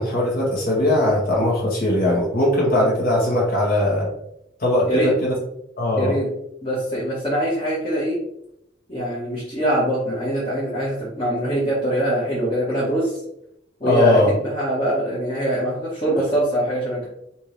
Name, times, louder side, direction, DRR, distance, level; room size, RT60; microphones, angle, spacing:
voice 1, 0.0-4.1 4.6-5.3 5.8-6.2 13.8-14.3, left 1 dB, 55° left, -4 dB, 1.6 m, -20 dB
voice 2, 6.0-6.3 6.6-8.2 8.9-13.2 13.8-17.1, right 1 dB, 30° left, -7 dB, 1.3 m, -23 dB
4.4 x 2.8 x 3.3 m, 0.77 s
head